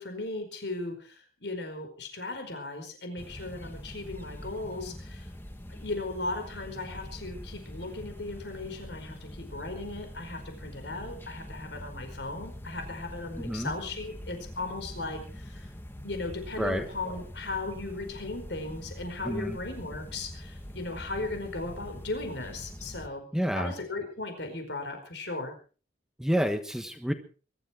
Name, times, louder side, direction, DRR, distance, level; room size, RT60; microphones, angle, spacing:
voice 1, 0.0-5.3 5.7-15.7 16.0-23.3 23.5-25.5, left 2 dB, 75° left, 6 dB, 4.8 m, -37 dB
sound 1, 3.2-23.1, equal, 10° left, 1.5 m, -44 dB
voice 2, 13.4-13.7 16.6-16.9 19.2-19.6 23.3-23.7 26.2-27.1, equal, 5° right, 7 dB, 1.2 m, -29 dB
23.0 x 13.0 x 4.6 m, 0.39 s
head